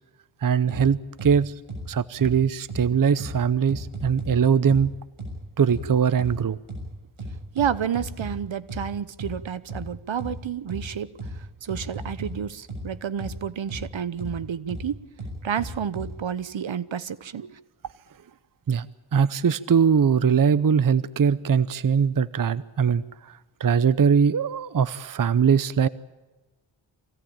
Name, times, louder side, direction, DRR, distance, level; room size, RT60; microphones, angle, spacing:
voice 1, 0.4-1.5 1.9-4.9 5.6-6.6 18.7-18.9 19.1-25.9, right 7 dB, 40° right, 0.7 m, -21 dB
sound 1, 0.7-0.8 1.2-1.3 1.7-1.8 2.2-2.3 2.7-2.8 3.2-3.3 3.7-4.3 4.7-4.8 5.2-5.3 5.7-5.8 6.2-6.3 6.7-6.8 7.2-8.3 8.7-8.8 9.2-9.3 9.7-9.8 10.2-10.3 10.7-10.8 11.2-11.3 11.7-12.3 12.7-12.8 13.2-13.3 13.7-13.8 14.2-14.3 14.7-14.8 15.2-16.1, right 2 dB, 80° right, 7.0 m, -34 dB
voice 2, 7.5-15.0 15.4-17.6, right 8 dB, 65° right, 1.0 m, -30 dB
24.0 x 17.0 x 8.8 m
cardioid pair, 45°, 49 cm